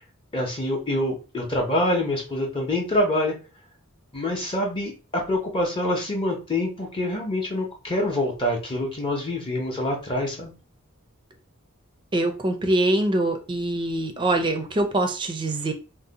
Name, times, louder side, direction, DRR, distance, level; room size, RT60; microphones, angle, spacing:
voice 1, 0.3-3.4 4.1-10.5, left 1 dB, 25° left, 0.7 m, -26 dB
voice 2, 12.1-15.7, right 1 dB, 25° right, 0.4 m, -24 dB
2.6 x 2.0 x 3.9 m
head